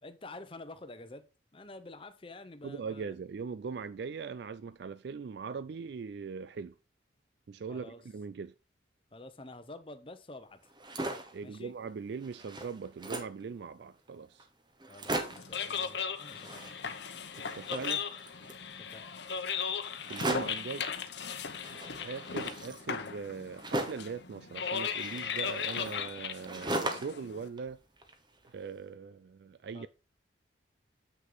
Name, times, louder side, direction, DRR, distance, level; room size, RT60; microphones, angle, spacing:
voice 1, 0.0-1.3 1.5-3.1 7.7-8.0 9.1-10.7 11.4-11.7 14.9-16.7 18.8-19.1 29.7-29.9, left 2 dB, 25° left, 0.8 m, -48 dB
voice 2, 2.6-6.7 7.5-8.5 11.3-14.5 17.4-18.1 20.1-20.9 21.7-27.8 28.5-29.9, right 5 dB, 60° right, 0.3 m, -41 dB
sound 1, 10.6-11.4 11.9-12.0 12.2-13.4 14.1-14.2 14.4-14.5 14.8-15.6 16.3-17.1 17.3-18.6 20.0-20.7 21.6-24.1 24.9-27.2 27.6-28.5, right 1 dB, 25° right, 1.1 m, -38 dB
sound 2, 15.2-27.5, left 6 dB, 65° left, 0.9 m, -37 dB
7.5 x 6.3 x 3.9 m
head